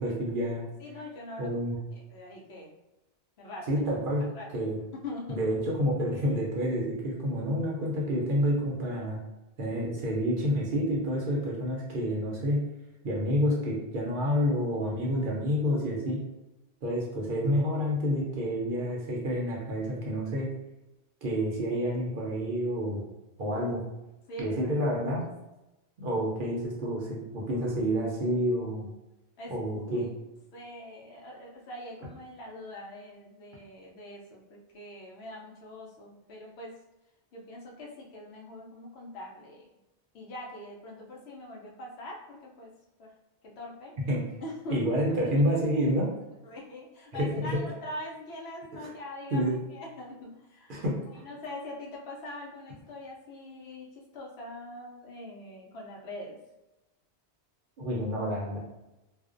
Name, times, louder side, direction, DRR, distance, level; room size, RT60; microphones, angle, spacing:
voice 1, 0.0-0.7 1.4-1.8 3.7-4.3 4.5-4.8 5.3-9.2 9.6-12.6 13.0-16.2 16.8-20.5 21.2-23.0 23.4-23.8 24.4-25.2 26.0-28.9 29.5-30.1 44.1-44.2 44.7-46.1 47.1-47.6 48.8-48.9 49.3-49.6 50.7-51.0 57.8-58.6, equal, 60° right, -3 dB, 0.7 m, -28 dB
voice 2, 0.8-2.7 3.4-3.7 4.3-4.5 4.9-5.5 14.9-15.1 24.3-24.7 29.4-30.1 30.5-36.7 37.3-39.7 40.1-42.7 43.0-43.1 43.4-43.9 44.4-44.8 45.1-45.2 46.4-50.8 51.2-56.4, left 1 dB, 75° left, -2 dB, 0.8 m, -43 dB
2.4 x 2.1 x 2.4 m, 0.97 s
omnidirectional pair, 1.1 m